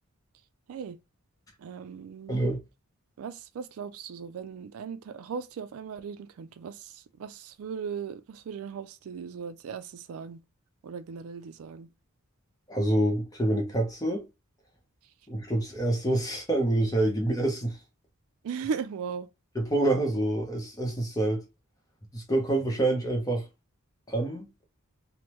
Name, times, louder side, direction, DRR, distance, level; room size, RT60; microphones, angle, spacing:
voice 1, 1.6-2.5 3.2-10.4 10.8-11.9 18.4-19.3, right 6 dB, 70° right, 0.3 m, -38 dB
voice 2, 2.3-2.6 12.7-14.2 15.3-17.8 19.5-21.4 22.1-23.4 24.1-24.4, right 1 dB, 15° left, 0.8 m, -27 dB
3.4 x 2.1 x 3.0 m
head